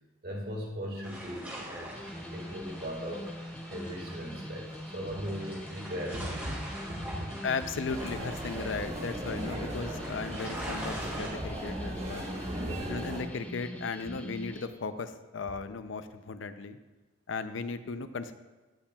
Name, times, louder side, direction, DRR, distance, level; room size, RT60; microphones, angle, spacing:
voice 1, 0.2-3.3 3.7-7.3 12.7-12.8, equal, 55° right, 0 dB, 1.8 m, -38 dB
sound 1, 1.0-11.3, equal, 10° right, 2.4 m, -44 dB
sound 2, 1.9-14.7, left 1 dB, 5° left, 0.4 m, -43 dB
voice 2, 7.4-12.3 12.9-16.8 17.3-18.3, left 4 dB, 90° left, 11 dB, 0.5 m, -36 dB
sound 3, 7.9-13.2, right 1 dB, 35° right, 1.2 m, -38 dB
16.5 x 5.7 x 2.3 m, 1.2 s
head